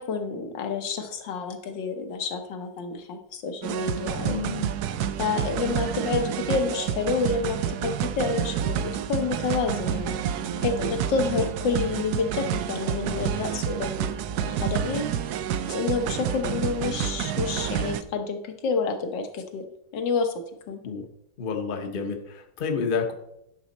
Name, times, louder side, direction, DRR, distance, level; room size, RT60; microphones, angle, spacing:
voice 1, 0.0-4.4 5.2-10.2 10.6-14.1 14.4-15.1 15.7-19.6 19.9-20.3 20.7-20.8, left 4 dB, 75° left, 6 dB, 1.7 m, -29 dB
sound 1, 3.6-18.0, right 9 dB, 70° right, 1.0 m, -29 dB
voice 2, 4.2-4.7 20.8-21.1 21.4-23.1, left 5 dB, 40° left, 5 dB, 0.8 m, -29 dB
10.5 x 6.2 x 4.1 m, 0.79 s
omnidirectional pair, 2.0 m